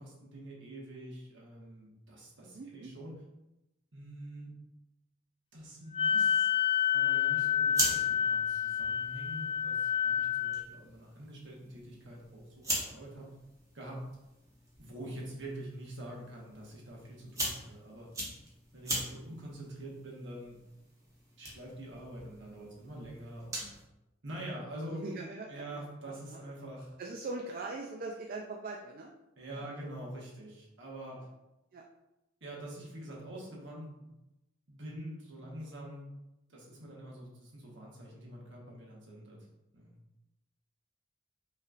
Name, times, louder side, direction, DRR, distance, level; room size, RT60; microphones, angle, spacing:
voice 1, 0.0-3.2 3.9-4.5 5.5-6.5 6.9-13.3 13.7-14.0 14.8-18.1 18.7-20.6 21.4-23.7 24.2-25.0 25.5-26.9 29.4-31.3 32.4-34.1 34.7-36.0 36.5-39.4 39.7-39.9, right 1 dB, 65° right, -2 dB, 1.2 m, -45 dB
voice 2, 2.4-2.9 19.2-19.3 24.9-25.6 26.1-26.4 27.0-29.1 29.5-29.7 31.7-31.8, right 3 dB, 45° right, 1 dB, 0.4 m, -41 dB
Wind instrument woodwind instrument, 5.9-10.6, left 9 dB, 25° left, 0.3 m, -29 dB
sound 1, 7.4-23.8, right 1 dB, 15° right, 1.0 m, -41 dB
5.4 x 3.2 x 2.5 m, 0.94 s
head